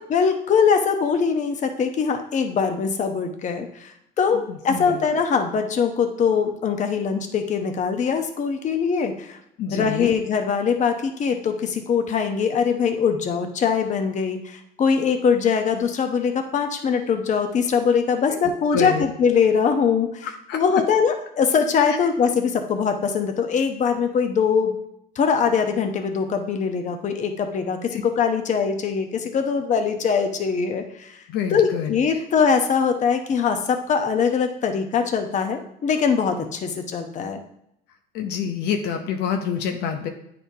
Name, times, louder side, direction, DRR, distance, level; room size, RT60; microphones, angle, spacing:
voice 1, 0.1-9.4 9.7-20.3 20.5-24.8 25.2-31.2 31.5-37.4, left 6 dB, 45° left, 5 dB, 0.8 m, -22 dB
voice 2, 4.3-5.0 9.6-10.1 18.3-18.4 18.7-19.1 20.2-20.8 27.9-28.0 31.3-31.9 38.1-40.1, left 7 dB, 80° left, 4 dB, 0.7 m, -27 dB
9.1 x 4.3 x 2.7 m, 0.77 s
cardioid pair, 110°, 17 cm